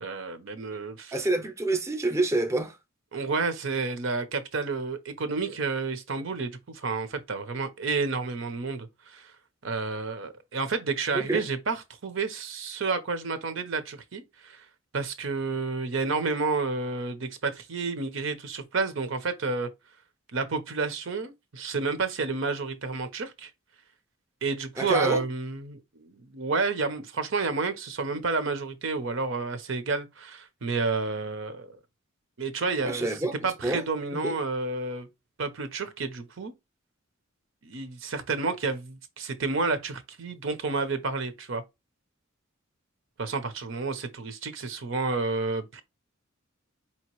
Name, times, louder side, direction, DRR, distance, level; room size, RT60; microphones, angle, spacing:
voice 1, 0.0-1.1 3.1-9.3 9.6-11.8 12.0-14.6 14.9-19.7 20.3-23.5 24.4-31.7 32.4-33.1 33.4-35.1 35.4-36.5 37.6-41.6 43.2-45.8, right 4 dB, 65° right, 0.7 m, -30 dB
voice 2, 1.1-2.8 11.1-11.4 24.8-25.2 32.8-33.8 34.1-34.4, right 2 dB, 15° right, 0.7 m, -28 dB
4.9 x 2.9 x 3.0 m
head